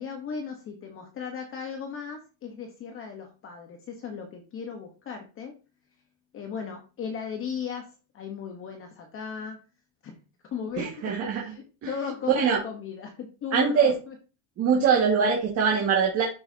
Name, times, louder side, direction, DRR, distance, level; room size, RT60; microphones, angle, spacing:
voice 1, 0.0-5.5 6.3-7.9 8.1-9.6 10.0-10.1 10.5-14.1, left 6 dB, 30° left, 3 dB, 1.1 m, -36 dB
voice 2, 10.8-11.5 12.4-12.6 13.5-13.9 14.6-16.2, right 6 dB, 35° right, -1 dB, 1.8 m, -23 dB
12.5 x 5.6 x 2.8 m, 0.33 s
cardioid pair, 165°, 46 cm